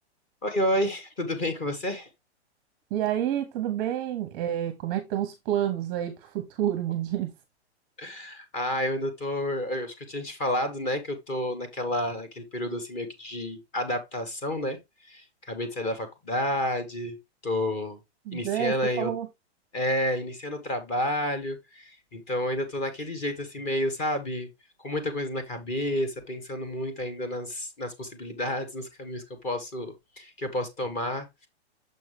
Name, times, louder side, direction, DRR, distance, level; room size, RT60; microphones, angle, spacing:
voice 1, 0.4-2.1 8.0-17.2 17.4-18.0 18.3-19.1 19.7-24.5 24.8-31.5, left 1 dB, 20° left, 1.2 m, -30 dB
voice 2, 2.9-7.3 18.3-19.3, right 11 dB, 20° right, 0.8 m, -29 dB
6.6 x 5.4 x 3.2 m
hypercardioid pair, 165°, 34 cm